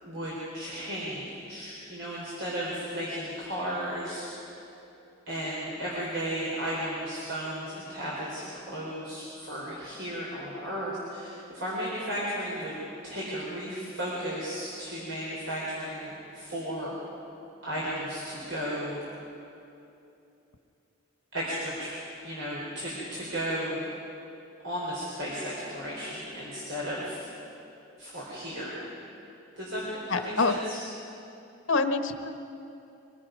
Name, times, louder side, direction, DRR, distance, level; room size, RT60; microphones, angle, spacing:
voice 1, 0.0-4.5 5.3-17.0 17.6-19.0 21.3-23.8 24.6-27.3 28.0-28.9 29.6-30.8, equal, 70° right, -6 dB, 4.3 m, -34 dB
voice 2, 30.1-30.5 31.7-32.4, left 3 dB, 85° left, 7 dB, 1.2 m, -26 dB
25.5 x 20.0 x 5.3 m, 2.8 s
head